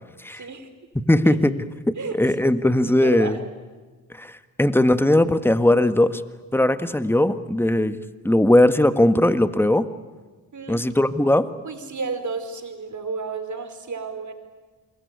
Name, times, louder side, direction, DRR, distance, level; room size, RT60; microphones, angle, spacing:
voice 1, 0.3-0.7 1.2-1.3 1.9-2.2 3.0-3.4 10.5-10.8 11.6-14.3, right 4 dB, 50° right, 8 dB, 4.6 m, -31 dB
voice 2, 1.0-1.6 2.1-3.4 4.1-6.2 6.5-8.0 8.2-9.9 10.7-11.5, left 1 dB, 5° left, 11 dB, 1.7 m, -19 dB
28.0 x 22.0 x 9.7 m, 1.3 s
supercardioid pair, 50°, 38 cm